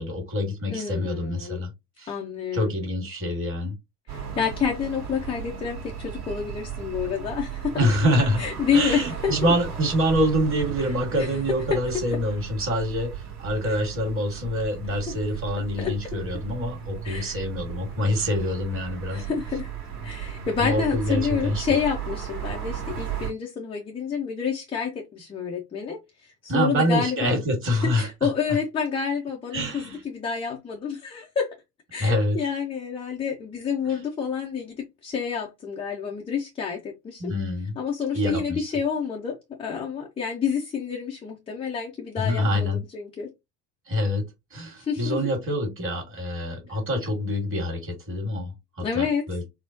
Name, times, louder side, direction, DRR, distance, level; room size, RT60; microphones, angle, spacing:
voice 1, 0.0-1.7 2.0-2.1 2.5-3.7 7.7-8.4 8.7-19.3 20.6-21.8 26.5-28.1 29.5-30.0 32.0-32.4 33.9-34.0 37.2-37.8 38.1-38.6 42.2-42.8 43.9-44.2 44.5-48.5 48.8-49.4, equal, 25° right, 1.6 m, -26 dB
voice 2, 0.7-1.6 2.1-2.7 4.1-7.9 8.4-9.5 11.2-11.3 11.7-11.8 13.7-13.8 14.9-15.1 15.8-16.0 17.0-17.4 19.1-19.7 20.0-27.3 27.7-31.5 31.9-37.3 37.8-43.3 44.8-45.2 48.8-49.3, left 6 dB, 10° left, 0.5 m, -29 dB
sound 1, 4.1-23.3, right 8 dB, 45° right, 1.6 m, -35 dB
4.4 x 2.0 x 2.6 m
figure-of-eight pair, 75°, 49 cm